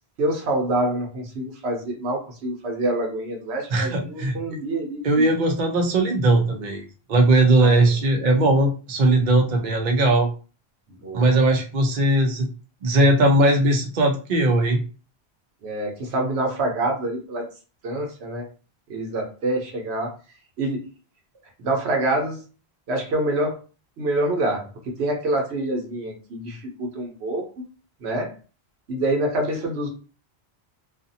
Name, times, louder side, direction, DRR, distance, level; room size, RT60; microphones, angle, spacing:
voice 1, 0.2-5.3 7.6-8.0 10.9-11.4 15.6-17.5 17.8-18.5 18.9-20.2 20.6-20.9 21.6-22.4 22.9-23.6 24.0-27.5 28.0-28.3 28.9-29.9, right 1 dB, 80° right, 2 dB, 1.0 m, -26 dB
voice 2, 3.7-4.3 5.0-6.8 7.1-10.3 11.1-12.5 12.8-14.8, right 2 dB, 55° right, 3 dB, 0.7 m, -19 dB
2.5 x 2.4 x 2.6 m, 0.35 s
omnidirectional pair, 1.1 m